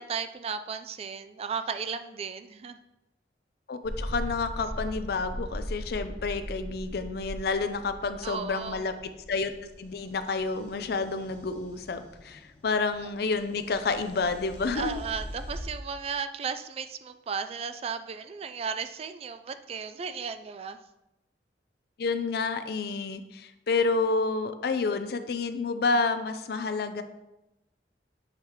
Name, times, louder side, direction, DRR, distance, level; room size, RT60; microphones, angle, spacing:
voice 1, 0.0-2.8 8.2-8.8 14.7-20.8, right 6 dB, 35° right, 10 dB, 0.3 m, -35 dB
voice 2, 3.7-8.9 9.3-9.5 9.8-15.0 22.0-27.0, left 4 dB, 60° left, 10 dB, 0.5 m, -29 dB
sound 1, 3.8-15.7, equal, 10° left, 1.1 m, -40 dB
7.5 x 2.9 x 4.8 m, 0.95 s
head